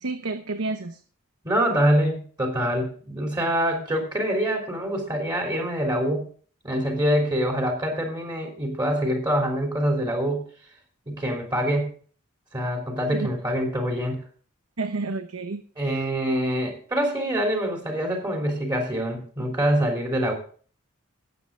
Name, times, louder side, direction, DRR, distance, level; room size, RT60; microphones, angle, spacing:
voice 1, 0.0-1.0 13.1-13.3 14.8-16.1, right 3 dB, 85° right, 8 dB, 0.9 m, -31 dB
voice 2, 1.4-6.3 6.6-10.4 11.0-11.9 12.5-14.2 15.8-20.3, equal, 20° right, 0 dB, 3.3 m, -25 dB
18.0 x 8.0 x 3.7 m, 0.43 s
head